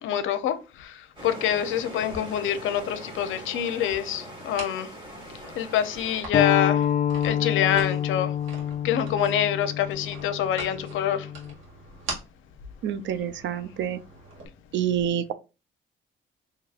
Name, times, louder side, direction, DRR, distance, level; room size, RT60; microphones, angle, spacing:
voice 1, 0.0-4.9 5.6-6.9 7.2-8.3 8.8-11.3, left 10 dB, 85° left, 0.6 m, -26 dB
sound 1, 1.1-6.2, right 1 dB, 25° right, 2.0 m, -42 dB
sound 2, 2.0-14.5, right 3 dB, 85° right, 1.7 m, -44 dB
sound 3, 6.3-11.5, left 9 dB, 40° left, 0.4 m, -27 dB
voice 2, 12.8-14.0 14.7-15.3, right 9 dB, 70° right, 0.5 m, -27 dB
4.7 x 2.9 x 2.4 m
cardioid pair, 90°, 20 cm